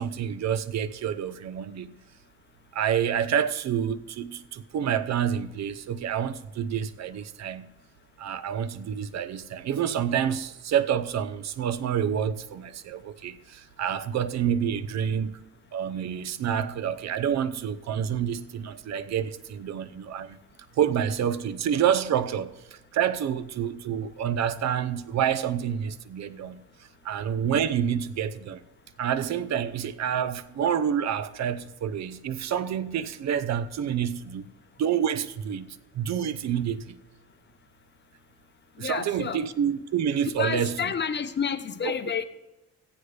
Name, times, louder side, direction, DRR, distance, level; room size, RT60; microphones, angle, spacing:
voice 1, 0.0-1.9 2.7-7.7 8.2-15.4 15.7-20.4 20.8-26.6 27.0-28.6 29.0-34.5 34.8-37.0 38.8-40.7 41.8-41.9, right 8 dB, 60° right, 0.8 m, -28 dB
voice 2, 38.8-39.4 40.4-42.2, left 6 dB, 35° left, 0.8 m, -29 dB
15.0 x 9.5 x 3.3 m
cardioid pair, 90°, 30 cm